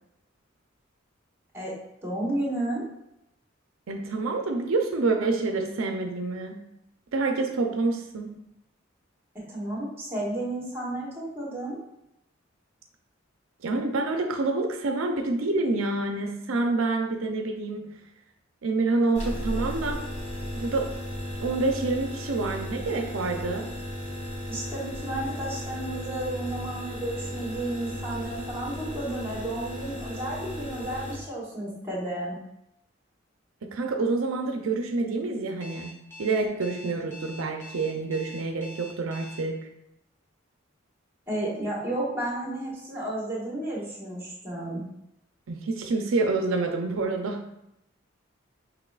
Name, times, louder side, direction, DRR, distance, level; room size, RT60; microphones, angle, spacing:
voice 1, 2.0-2.9 9.5-11.8 24.5-32.4 41.3-44.8, right 1 dB, 10° right, -5 dB, 1.3 m, -32 dB
voice 2, 3.9-6.7 7.1-8.4 13.6-18.0 18.6-20.1 20.5-20.9 21.4-23.7 33.6-39.7 45.5-47.4, right 3 dB, 90° right, 4 dB, 0.5 m, -27 dB
sound 1, 19.1-31.2, equal, 35° left, 1.5 m, -35 dB
Alarm, 35.6-39.4, left 1 dB, 15° left, 0.6 m, -45 dB
5.9 x 3.1 x 2.4 m, 0.81 s
head